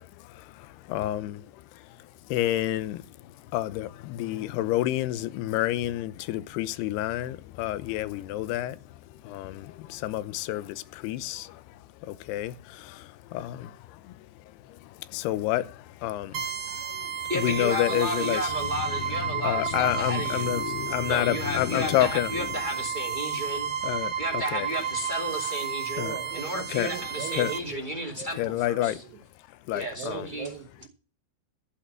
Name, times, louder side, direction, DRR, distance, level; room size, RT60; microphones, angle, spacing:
voice 1, 0.0-1.6 2.3-3.0 3.5-8.8 9.2-11.6 12.0-14.3 14.7-18.4 19.0-22.6 23.8-24.7 26.0-26.1 26.7-26.9 27.3-27.5 28.4-29.0 29.7-30.3, left 14 dB, 75° left, 2.5 m, -29 dB
sound 1, 16.3-27.6, right 8 dB, 65° right, 2.7 m, -32 dB
voice 2, 17.3-20.5 21.1-23.7 24.2-26.0 26.3-29.0 29.7-30.5, equal, 30° right, 0.8 m, -33 dB
voice 3, 26.0-27.8 28.1-28.3 28.8-29.2 29.9-30.9, right 8 dB, 80° right, 3.8 m, -40 dB
14.5 x 5.7 x 7.4 m
omnidirectional pair, 5.5 m